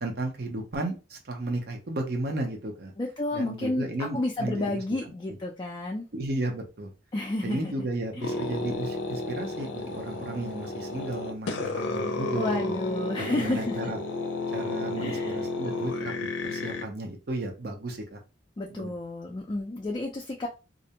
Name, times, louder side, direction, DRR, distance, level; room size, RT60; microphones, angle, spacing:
voice 1, 0.0-2.9 3.3-4.8 5.3-5.4 6.1-6.9 7.4-12.6 13.2-14.0 14.5-16.1 16.4-18.2 18.7-18.9, right 2 dB, 60° right, 3 dB, 0.6 m, -34 dB
voice 2, 3.0-3.9 4.1-6.1 7.1-7.9 8.2-8.4 12.4-13.9 15.0-15.4 18.6-20.5, left 2 dB, 25° left, 0 dB, 0.3 m, -31 dB
sound 1, 8.2-16.8, left 2 dB, 90° left, 0.5 m, -32 dB
2.5 x 2.1 x 2.8 m, 0.31 s
head